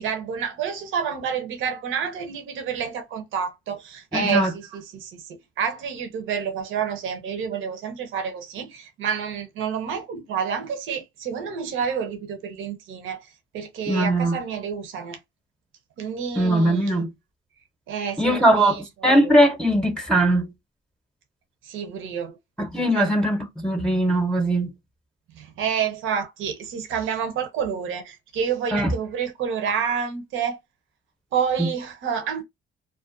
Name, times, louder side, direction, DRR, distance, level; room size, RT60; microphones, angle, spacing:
voice 1, 0.0-13.3 13.5-15.2 16.0-17.0 17.9-19.3 21.6-22.4 22.9-23.1 25.4-30.6 31.3-32.4, right 7 dB, 85° right, 0.6 m, -29 dB
voice 2, 4.1-4.5 13.9-14.4 16.3-17.1 18.2-20.5 22.6-24.7 28.7-28.9 31.6-31.7, right 1 dB, 5° left, 0.6 m, -20 dB
2.4 x 2.2 x 2.5 m
cardioid pair, 90°, 20 cm